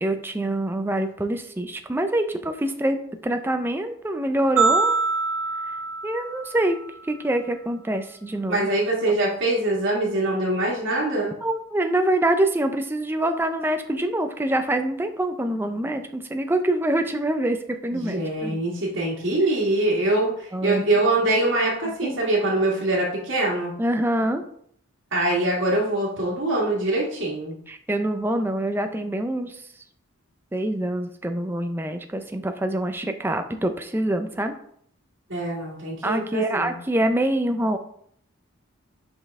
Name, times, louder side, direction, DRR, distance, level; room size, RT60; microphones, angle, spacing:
voice 1, 0.0-3.0 3.2-5.0 6.0-6.8 7.1-8.7 9.1-9.2 11.4-18.6 20.5-20.8 22.0-22.3 23.8-24.4 27.7-29.6 30.5-34.5 36.0-37.8, right 1 dB, 10° right, 7 dB, 0.4 m, -25 dB
sound 1, 4.6-6.9, right 4 dB, 80° right, 1.5 m, -24 dB
voice 2, 8.5-11.3 17.9-23.7 25.1-27.5 35.3-36.7, right 2 dB, 60° right, -7 dB, 1.7 m, -23 dB
5.4 x 5.4 x 3.5 m, 0.64 s
head